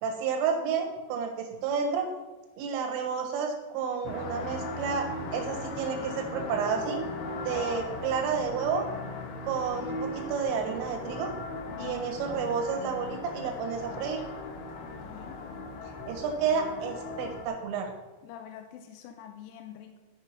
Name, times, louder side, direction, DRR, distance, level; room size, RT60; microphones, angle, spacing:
voice 1, 0.0-2.1 2.6-7.0 7.4-8.9 9.4-11.3 11.8-14.2 16.1-17.9, right 6 dB, 85° right, 3 dB, 4.0 m, -30 dB
sound 1, 4.0-17.5, left 3 dB, 70° left, 2.8 m, -38 dB
voice 2, 14.8-15.4 18.2-20.0, left 9 dB, 85° left, 6 dB, 2.5 m, -46 dB
13.5 x 5.5 x 5.9 m, 1.2 s
omnidirectional pair, 5.7 m